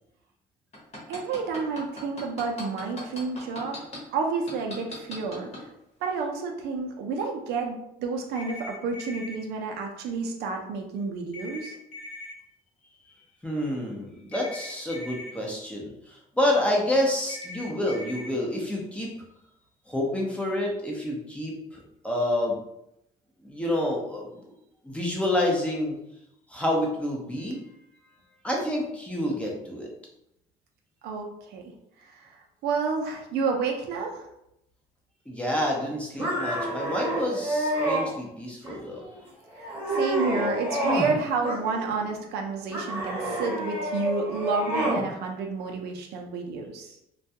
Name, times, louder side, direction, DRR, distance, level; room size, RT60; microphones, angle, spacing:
sound 1, 0.7-4.0 4.5-5.6 6.1-6.2, left 1 dB, 40° left, 1.0 m, -39 dB
voice 1, 1.1-3.8 4.1-5.5 6.0-11.8 31.0-31.7 32.0-32.3 32.6-34.2 39.6-47.0, right 4 dB, 75° right, 2 dB, 0.5 m, -30 dB
sound 2, 8.4-9.4 11.3-12.3 14.3-15.3 17.3-18.3, left 2 dB, 85° left, 0.7 m, -40 dB
voice 2, 13.4-19.2 19.9-21.6 22.0-22.6 23.4-24.4 24.8-26.0 26.5-27.6 28.4-29.9 35.3-39.1, left 1 dB, 5° left, -2 dB, 0.6 m, -28 dB
sound 3, 36.2-38.1 38.6-39.1 39.5-41.1 41.4-42.1 42.7-45.0, right 1 dB, 10° right, 1.0 m, -28 dB
2.3 x 2.2 x 2.7 m, 0.81 s
cardioid pair, 110°, 17 cm